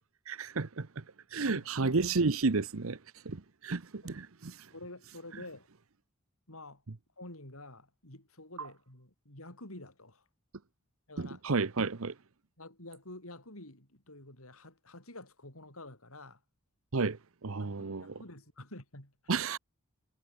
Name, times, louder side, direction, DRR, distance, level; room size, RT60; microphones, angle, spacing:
voice 1, 0.3-1.0 1.3-3.0 3.2-4.7 8.6-8.7 11.2-12.1 16.9-18.1 19.3-19.6, right 4 dB, 70° right, 0.9 m, -32 dB
voice 2, 1.5-2.0 4.0-4.2 4.7-5.7 6.5-6.8 7.2-10.2 11.1-11.4 12.6-16.4 17.6-19.3, left 2 dB, 70° left, 7.6 m, -49 dB
head